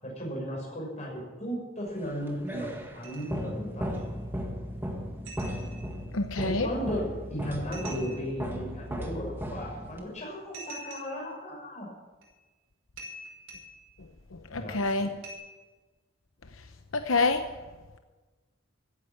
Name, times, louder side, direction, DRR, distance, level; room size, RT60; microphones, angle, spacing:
voice 1, 0.0-3.9 6.4-11.9 14.5-14.8, equal, 35° left, -1 dB, 6.1 m, -35 dB
sound 1, 2.0-10.1, equal, 10° right, 1.7 m, -36 dB
sound 2, 3.0-3.5 3.9-4.0 5.2-6.1 7.7-8.4 10.5-11.3 12.2-12.4 13.0-13.9 15.2-15.3, right 2 dB, 85° right, 5.6 m, -45 dB
voice 2, 6.1-6.7 14.3-15.1 16.9-17.4, left 3 dB, 80° left, 7 dB, 0.9 m, -27 dB
15.0 x 10.0 x 8.8 m, 1.3 s
head